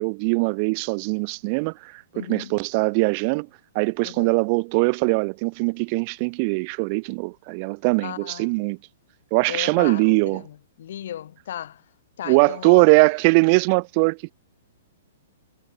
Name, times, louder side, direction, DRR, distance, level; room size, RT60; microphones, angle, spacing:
voice 1, 0.0-3.5 3.7-8.8 9.3-10.4 12.3-14.2, right 33 dB, 40° right, 0.5 m, -21 dB
voice 2, 2.1-2.6 4.0-4.4 8.0-8.6 9.5-11.8 12.2-12.9, left 11 dB, 65° left, 1.6 m, -36 dB
hypercardioid pair, 150°, 0 cm